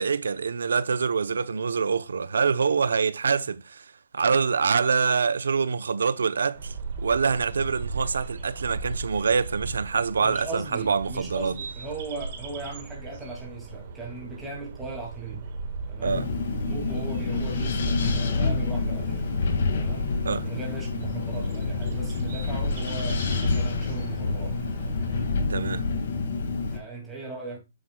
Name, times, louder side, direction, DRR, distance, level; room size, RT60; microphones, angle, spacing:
voice 1, 0.0-11.5 16.0-16.3 20.2-20.5 25.5-25.9, right 5 dB, 80° right, 0.8 m, -25 dB
sound 1, 6.5-25.3, right 4 dB, 30° right, 1.6 m, -38 dB
voice 2, 10.2-15.5 15.9-16.3 16.6-19.2 19.7-24.6 26.7-27.6, right 3 dB, 5° right, 2.4 m, -38 dB
Wind, 16.1-26.8, left 4 dB, 45° left, 2.0 m, -28 dB
9.4 x 7.7 x 2.3 m
hypercardioid pair, 180°, 0 cm